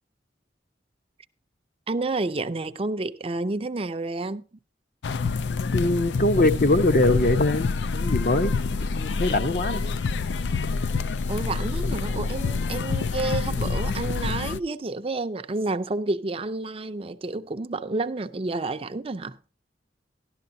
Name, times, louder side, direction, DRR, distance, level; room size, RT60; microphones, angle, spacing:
voice 1, 1.9-4.4 11.3-19.4, right 2 dB, 30° right, 0.5 m, -30 dB
sound 1, 5.0-14.6, left 4 dB, 70° left, 0.4 m, -27 dB
voice 2, 5.6-9.8, left 2 dB, 50° left, 0.9 m, -23 dB
12.5 x 12.0 x 2.7 m
head